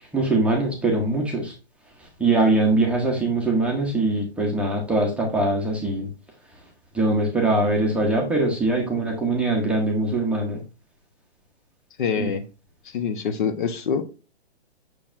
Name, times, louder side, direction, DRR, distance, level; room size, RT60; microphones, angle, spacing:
voice 1, 0.1-1.5 2.2-6.1 6.9-10.6 12.2-12.3, right 2 dB, 5° right, 0.8 m, -22 dB
voice 2, 12.0-12.4 12.8-14.0, left 6 dB, 50° left, 1.0 m, -25 dB
6.8 x 6.1 x 2.5 m
hypercardioid pair, 145°, 33 cm